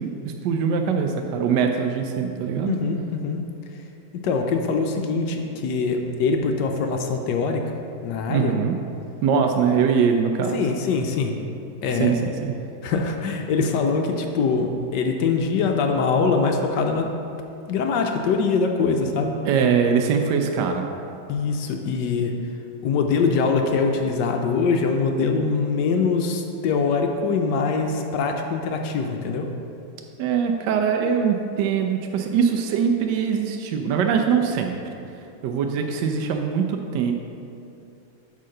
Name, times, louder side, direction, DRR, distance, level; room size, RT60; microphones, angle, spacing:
voice 1, 0.0-2.8 8.3-8.8 9.2-10.6 12.0-12.5 19.4-20.9 30.2-34.8 35.4-37.1, right 6 dB, 75° right, 4 dB, 1.1 m, -22 dB
voice 2, 2.7-3.4 3.7-3.8 4.2-7.8 8.0-8.5 10.5-11.3 11.8-12.1 12.8-17.1 17.7-19.3 21.3-22.3 22.8-29.5, left 4 dB, 70° left, 4 dB, 1.2 m, -23 dB
8.4 x 3.8 x 6.4 m, 2.6 s
omnidirectional pair, 2.1 m